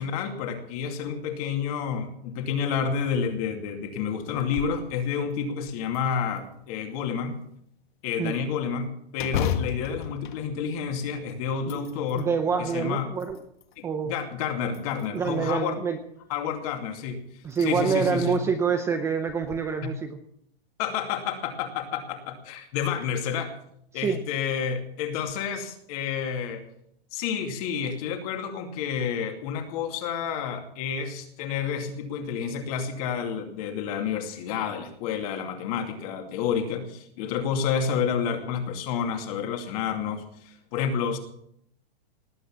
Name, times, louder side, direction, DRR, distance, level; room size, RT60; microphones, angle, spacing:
voice 1, 0.0-7.4 8.0-12.3 12.6-13.1 13.8-15.8 16.3-17.2 17.6-18.4 19.8-19.9 20.8-23.5 23.9-26.6 27.1-41.2, left 7 dB, 35° left, 5 dB, 2.5 m, -30 dB
sound 1, 4.3-4.9 5.3-5.4 5.9-6.8 9.2-11.2 11.6-12.3 12.9-13.8 14.7-15.4 16.8-16.9 17.4-17.7 18.1-18.2 19.3-19.6, left 9 dB, 55° left, 1.7 m, -33 dB
voice 2, 12.1-13.4 13.8-14.1 15.1-16.0 17.4-20.2 23.9-24.2, right 6 dB, 10° right, 6 dB, 0.6 m, -26 dB
19.0 x 8.3 x 7.3 m, 0.71 s
hypercardioid pair, 160°, 31 cm